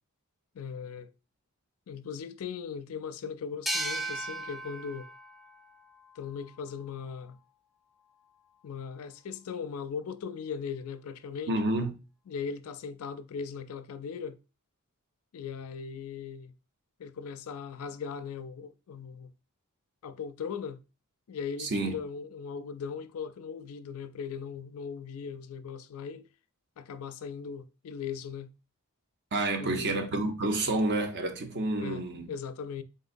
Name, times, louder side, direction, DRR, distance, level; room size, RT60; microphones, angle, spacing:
voice 1, 0.5-1.1 1.9-5.1 6.2-7.4 8.6-11.6 12.3-14.4 15.3-16.5 17.0-19.3 20.0-20.8 21.3-26.3 26.8-28.5 29.5-30.1 30.6-30.7 31.8-32.8, left 6 dB, 75° left, 0.4 m, -39 dB
sound 1, 3.7-7.0, right 1 dB, ahead, 0.3 m, -37 dB
voice 2, 11.5-11.9 21.6-22.0 29.3-32.3, right 2 dB, 55° right, 0.7 m, -29 dB
3.9 x 3.8 x 2.5 m
head